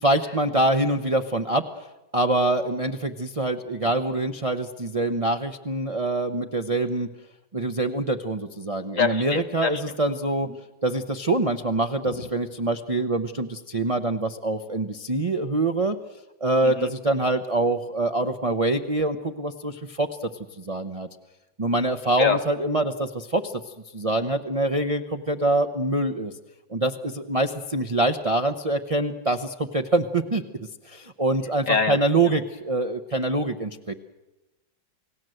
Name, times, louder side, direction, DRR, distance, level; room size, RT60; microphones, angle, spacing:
voice 1, 0.0-1.8 2.1-7.1 7.5-10.5 10.8-16.0 16.4-20.3 20.6-21.1 21.6-23.5 23.9-26.3 26.7-30.4 30.9-33.9, right 2 dB, 55° right, 5 dB, 0.3 m, -25 dB
voice 2, 9.0-9.8 10.4-10.6 12.1-12.3 16.6-16.9 22.2-22.4 31.7-32.0, left 6 dB, 45° left, 11 dB, 1.4 m, -25 dB
29.0 x 18.0 x 7.8 m, 1.0 s
omnidirectional pair, 2.1 m